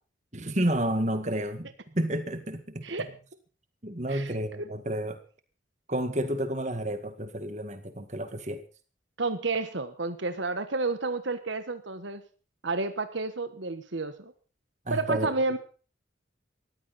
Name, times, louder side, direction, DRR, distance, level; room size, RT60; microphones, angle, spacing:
voice 1, 0.3-2.9 3.8-5.2 5.9-8.6 14.9-15.6, right 1 dB, 35° right, 8 dB, 2.0 m, -30 dB
voice 2, 9.2-12.2 12.6-14.3 14.9-15.6, right 3 dB, 70° right, 10 dB, 1.3 m, -30 dB
19.0 x 14.5 x 4.2 m, 0.38 s
head